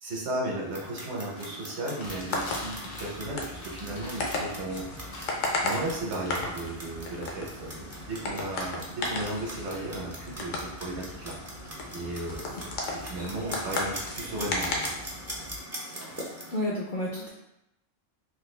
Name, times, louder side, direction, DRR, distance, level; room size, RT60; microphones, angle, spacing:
voice 1, 0.0-5.0 5.6-11.3 11.9-14.9, right 1 dB, 60° right, -3 dB, 1.0 m, -35 dB
Clock, 0.5-16.6, right 1 dB, 25° right, 0.3 m, -42 dB
sound 1, 1.4-3.3 3.5-4.6 5.1-6.3, left 2 dB, 85° left, 1.2 m, -43 dB
sound 2, 2.0-15.6, left 2 dB, 70° left, 0.9 m, -35 dB
voice 2, 16.5-17.3, left 1 dB, 55° left, -5 dB, 0.5 m, -31 dB
3.2 x 2.3 x 3.1 m, 0.85 s
omnidirectional pair, 1.4 m